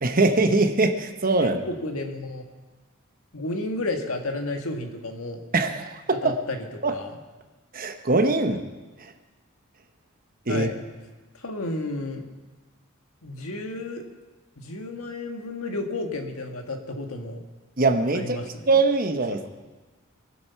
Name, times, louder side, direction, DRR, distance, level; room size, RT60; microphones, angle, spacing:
voice 1, 0.0-1.6 5.5-6.3 6.8-6.9 7.7-8.6 10.5-10.7 17.8-19.4, right 3 dB, 40° right, 6 dB, 1.0 m, -22 dB
voice 2, 1.4-2.4 3.3-5.4 6.2-7.1 10.5-10.8 11.3-12.3 13.2-14.0 14.6-17.4 18.1-18.7, left 2 dB, 80° left, 4 dB, 1.6 m, -32 dB
21.5 x 7.9 x 5.7 m, 1.2 s
head